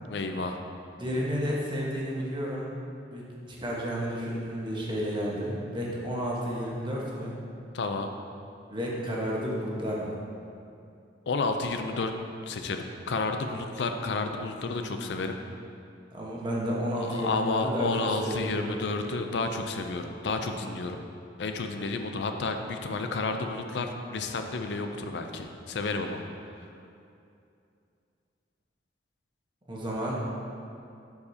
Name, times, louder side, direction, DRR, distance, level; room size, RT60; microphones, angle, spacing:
voice 1, 0.1-0.6 7.7-8.1 11.3-12.1 12.5-15.4 17.0-21.0 21.4-26.2, left 3 dB, 70° left, 6 dB, 0.5 m, -31 dB
voice 2, 1.0-2.7 3.1-3.2 3.6-7.3 8.7-10.2 16.1-18.7 29.7-30.2, equal, 25° right, -4 dB, 1.2 m, -31 dB
11.5 x 4.8 x 2.8 m, 2.6 s
head